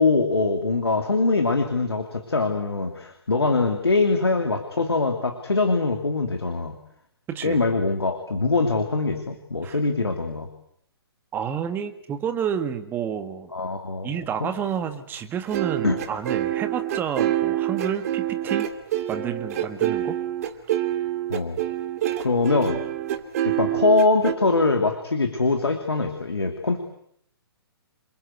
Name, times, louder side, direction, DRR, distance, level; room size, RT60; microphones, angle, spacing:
voice 1, 0.0-6.8 7.4-10.5 13.5-14.5 15.8-16.0 21.3-21.6 22.2-22.8 23.4-26.8, left 3 dB, 75° left, 5 dB, 2.9 m, -23 dB
voice 2, 7.3-7.6 9.6-9.8 11.3-13.5 14.0-18.7 19.1-20.2, right 8 dB, 15° right, 8 dB, 2.0 m, -30 dB
sound 1, 15.5-24.3, right 12 dB, 40° right, 2.5 m, -26 dB
28.0 x 22.0 x 8.1 m, 0.70 s
figure-of-eight pair, 125°, 13 cm